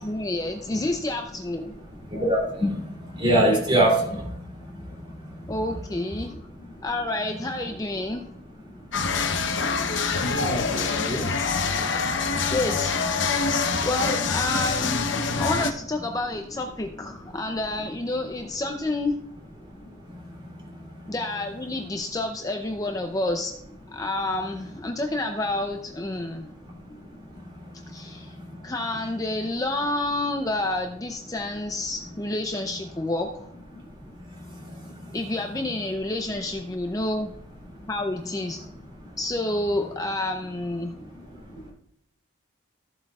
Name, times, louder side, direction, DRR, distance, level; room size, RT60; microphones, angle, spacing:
voice 1, 0.0-1.7 5.5-6.3 6.8-8.3 12.5-19.1 21.1-23.5 23.9-26.5 27.9-28.3 28.6-33.5 35.1-37.3 37.8-38.6 39.2-40.9, left 2 dB, 15° left, 4 dB, 0.5 m, -29 dB
voice 2, 1.8-5.8 6.1-6.9 8.0-8.1 8.6-12.5 13.4-13.9 15.2-15.4 17.2-17.5 18.1-18.5 19.6-21.1 26.2-28.7 33.7-35.2 35.7-35.8 36.3-36.4 37.7-37.9 38.5-38.7 39.0-39.2 40.8-41.7, right 1 dB, 25° right, -2 dB, 2.9 m, -30 dB
sound 1, 8.9-15.7, left 4 dB, 60° left, 0.8 m, -25 dB
14.0 x 7.5 x 2.4 m, 0.73 s
head